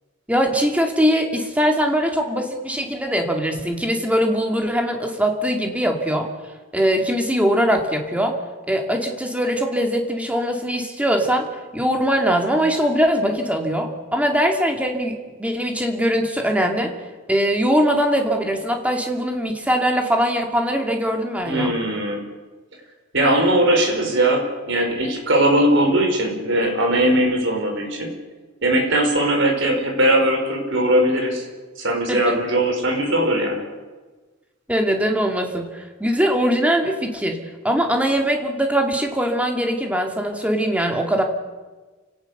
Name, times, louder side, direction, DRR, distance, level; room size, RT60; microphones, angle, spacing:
voice 1, 0.3-6.3 6.7-8.3 8.7-11.5 11.7-16.9 17.3-21.7 32.1-32.3 34.7-37.4 37.6-41.2, equal, 5° right, 3 dB, 2.5 m, -21 dB
voice 2, 21.5-22.2 23.1-28.1 28.6-31.5 31.8-33.6, right 1 dB, 60° right, 3 dB, 5.1 m, -19 dB
29.0 x 17.5 x 6.8 m, 1.3 s
head